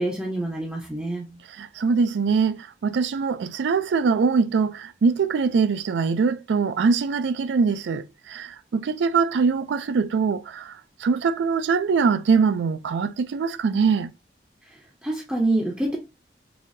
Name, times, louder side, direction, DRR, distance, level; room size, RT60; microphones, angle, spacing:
voice 1, 0.0-1.3 15.0-16.0, right 2 dB, 5° right, 0.5 m, -26 dB
voice 2, 1.6-14.1, right 5 dB, 85° right, 0.4 m, -23 dB
4.0 x 2.7 x 2.6 m
head